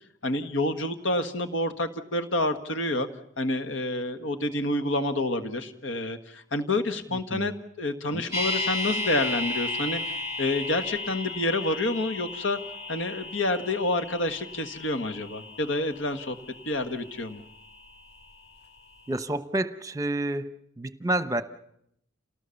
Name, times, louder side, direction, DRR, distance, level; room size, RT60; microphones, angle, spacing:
voice 1, 0.2-3.1 3.4-7.5 7.8-12.6 12.9-16.4 16.6-17.4, left 2 dB, 70° left, 9 dB, 1.6 m, -28 dB
voice 2, 7.1-7.6 8.1-8.2 19.1-21.4, right 1 dB, 15° right, 12 dB, 0.9 m, -30 dB
sound 1, 8.3-18.4 18.6-18.7, left 2 dB, 30° left, 4.4 m, -34 dB
28.5 x 18.5 x 7.1 m, 0.75 s
head